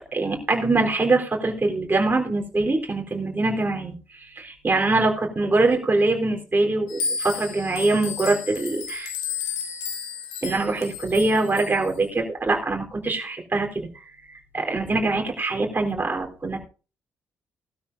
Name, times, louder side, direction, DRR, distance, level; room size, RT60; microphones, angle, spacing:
voice 1, 0.1-3.9 4.4-9.1 10.4-13.9 14.5-16.6, right 2 dB, 25° right, 1 dB, 3.9 m, -23 dB
sound 1, 6.9-11.9, left 6 dB, 80° left, 3.1 m, -32 dB
18.5 x 12.5 x 2.7 m, 0.35 s
hypercardioid pair, 45°, 7 cm